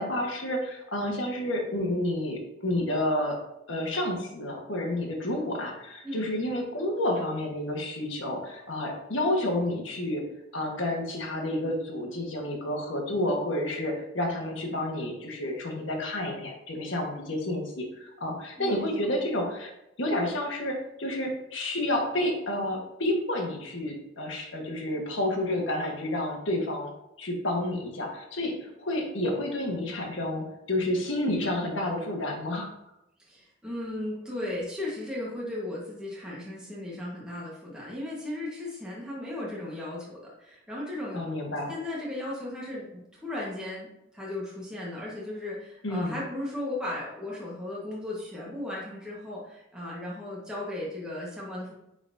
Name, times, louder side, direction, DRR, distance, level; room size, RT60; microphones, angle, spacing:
voice 1, 0.0-3.4 3.7-10.2 10.5-19.7 20.0-26.9 27.2-32.7 41.1-41.7 45.8-46.2, left 1 dB, 80° left, 1 dB, 1.4 m, -30 dB
voice 2, 18.6-18.9 33.2-41.2 41.7-43.9 44.1-51.7, left 1 dB, 5° right, -6 dB, 1.4 m, -36 dB
8.9 x 4.0 x 2.7 m, 0.85 s
head